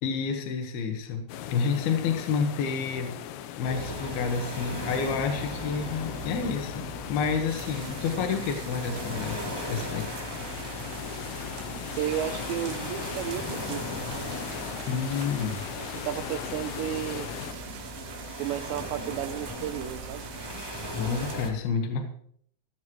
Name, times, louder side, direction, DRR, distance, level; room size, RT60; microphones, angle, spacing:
voice 1, 0.0-3.1 3.6-6.8 7.1-10.1 14.9-15.6 21.0-22.1, left 5 dB, 70° left, 4 dB, 3.2 m, -29 dB
sound 1, 1.3-17.5, left 10 dB, 90° left, 3.1 m, -38 dB
sound 2, 3.6-21.5, equal, 5° left, 2.3 m, -38 dB
sound 3, 7.5-21.4, right 10 dB, 70° right, 2.9 m, -45 dB
voice 2, 11.9-13.8 15.7-17.3 18.4-20.2, right 12 dB, 90° right, 11 dB, 3.0 m, -33 dB
19.0 x 14.0 x 3.2 m, 0.62 s
omnidirectional pair, 5.0 m